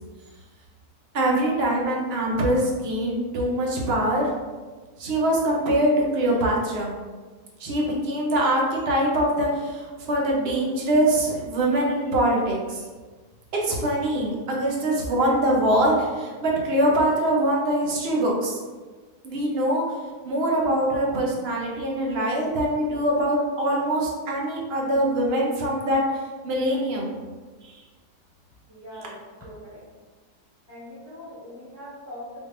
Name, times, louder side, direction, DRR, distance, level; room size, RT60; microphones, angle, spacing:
voice 1, 1.1-4.3 5.0-6.9 7.6-12.8 13.6-18.6 19.2-19.8 20.2-26.0 26.4-27.1 27.6-27.8, right 1 dB, 55° right, -2 dB, 0.7 m, -23 dB
voice 2, 28.7-29.9 30.7-32.5, left 1 dB, 15° left, -11 dB, 1.2 m, -41 dB
4.3 x 3.2 x 2.5 m, 1.4 s
omnidirectional pair, 1.9 m